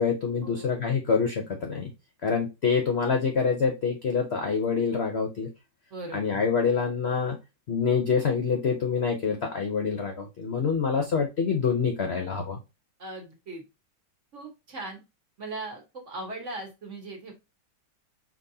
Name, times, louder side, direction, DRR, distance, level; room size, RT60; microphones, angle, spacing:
voice 1, 0.0-1.9 2.2-5.5 6.1-7.4 7.7-12.6, left 5 dB, 55° left, 3 dB, 0.7 m, -26 dB
voice 2, 5.9-6.4 13.0-13.6 14.3-15.0 15.4-17.3, right 2 dB, 45° right, 2 dB, 1.4 m, -39 dB
5.0 x 3.2 x 2.7 m, 0.25 s
omnidirectional pair, 2.0 m